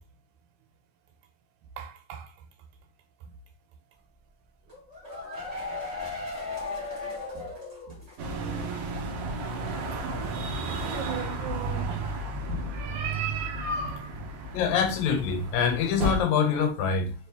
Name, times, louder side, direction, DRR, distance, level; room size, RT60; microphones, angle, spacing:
voice 1, 1.8-2.3 7.3-7.5 10.2-12.1 12.5-14.1, right 5 dB, 85° right, 2.1 m, -36 dB
sound 1, 4.7-8.3 8.6-8.7 9.0-9.1, left 3 dB, 35° right, 0.6 m, -36 dB
sound 2, 8.2-16.2, right 2 dB, 65° right, 1.5 m, -33 dB
voice 2, 14.5-17.1, left 6 dB, 80° left, 2.0 m, -25 dB
4.7 x 2.6 x 3.4 m
omnidirectional pair, 3.3 m